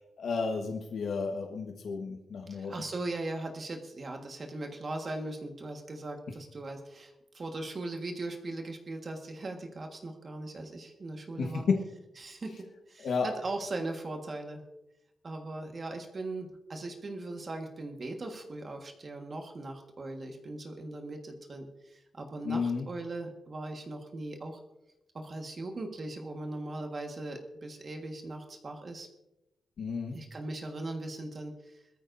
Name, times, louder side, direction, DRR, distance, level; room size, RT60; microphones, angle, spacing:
voice 1, 0.2-2.7 11.4-11.8 13.0-13.3 22.4-22.9 29.8-30.1, left 5 dB, 55° left, 2 dB, 1.3 m, -31 dB
voice 2, 2.5-11.6 12.2-14.6 15.2-24.6 25.1-29.1 30.1-31.8, right 2 dB, 30° right, 3 dB, 1.5 m, -39 dB
22.0 x 14.0 x 2.6 m, 0.91 s
wide cardioid pair, 180°, 0 cm